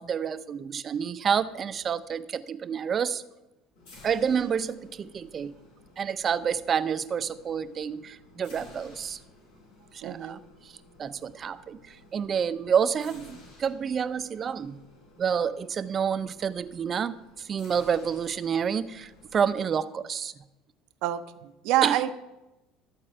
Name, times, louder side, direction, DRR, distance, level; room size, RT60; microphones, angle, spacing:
voice 1, 0.0-3.2 4.0-5.6 6.0-9.2 9.9-10.4 10.6-10.7 11.0-14.8 15.2-20.3 21.8-22.0, right 7 dB, 35° right, 13 dB, 0.6 m, -29 dB
sound 1, 3.7-19.7, left 2 dB, 85° left, 4.6 m, -54 dB
voice 2, 10.0-10.4 21.0-22.1, right 13 dB, 70° right, 10 dB, 0.7 m, -27 dB
13.0 x 4.5 x 8.6 m, 0.98 s
supercardioid pair, 120°, 0 cm